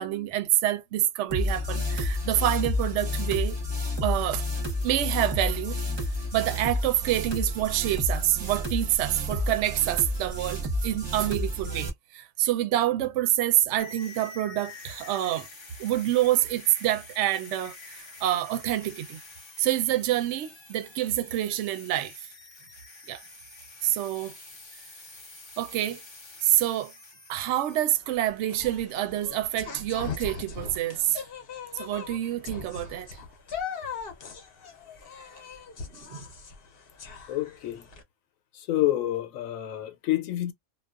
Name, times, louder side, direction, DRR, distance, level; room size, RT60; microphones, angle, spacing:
voice 1, 0.0-3.6 4.0-4.4 4.8-5.8 6.3-15.5 15.8-19.2 19.6-22.1 23.1-23.2 23.8-24.3 25.6-26.0 26.4-26.9 27.3-31.2 31.7-33.1 35.3-35.4 35.9-36.2, right 13 dB, 70° right, 0.8 m, -27 dB
sound 1, 1.3-11.9, left 1 dB, 30° right, 0.5 m, -30 dB
sound 2, 13.8-27.8, left 3 dB, 30° left, 0.5 m, -47 dB
sound 3, 27.9-38.0, left 5 dB, 55° left, 0.8 m, -40 dB
voice 2, 37.3-37.9 38.5-40.5, left 14 dB, 85° left, 1.0 m, -28 dB
2.4 x 2.2 x 2.3 m
omnidirectional pair, 1.4 m